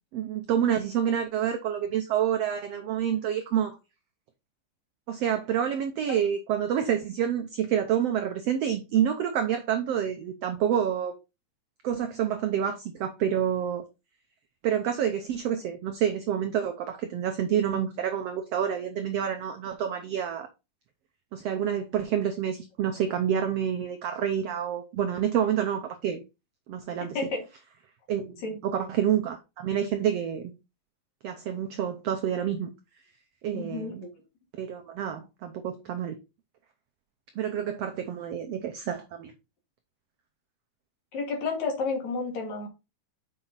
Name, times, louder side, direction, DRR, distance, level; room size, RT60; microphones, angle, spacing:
voice 1, 0.1-3.8 5.1-11.1 11.8-13.8 14.6-20.5 21.3-26.2 26.7-27.2 28.1-28.4 28.6-30.5 31.2-32.7 33.4-34.1 34.6-36.2 37.4-39.3, right 9 dB, 85° right, 1.4 m, -28 dB
voice 2, 33.5-34.1 41.1-42.7, left 4 dB, 60° left, 3.1 m, -31 dB
7.3 x 5.4 x 4.0 m
omnidirectional pair, 3.9 m